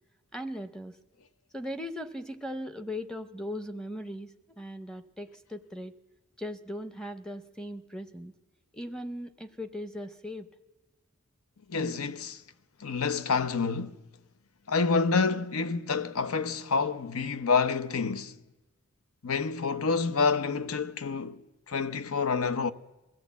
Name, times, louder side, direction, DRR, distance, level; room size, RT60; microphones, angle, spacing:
voice 1, 0.3-0.9 1.5-5.9 6.4-8.3 8.7-10.5, equal, 5° left, 0.7 m, -38 dB
voice 2, 11.7-12.4 12.8-14.0 14.7-18.3 19.2-22.7, left 4 dB, 85° left, 0.7 m, -28 dB
22.5 x 15.5 x 8.2 m
head